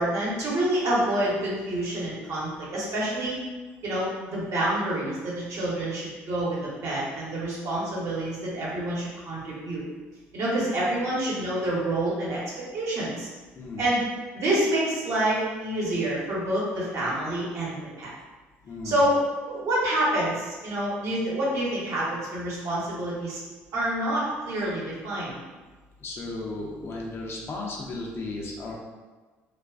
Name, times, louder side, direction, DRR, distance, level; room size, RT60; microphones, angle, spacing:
voice 1, 0.0-3.4 3.8-9.8 10.3-12.4 12.7-13.3 13.8-14.0 14.3-18.1 18.8-19.2 19.5-23.4 23.7-25.4, right 1 dB, 60° right, -6 dB, 1.0 m, -27 dB
voice 2, 18.6-19.0 26.0-28.7, left 2 dB, 45° left, -2 dB, 0.6 m, -35 dB
2.3 x 2.3 x 2.4 m, 1.3 s
hypercardioid pair, 65°, 6 cm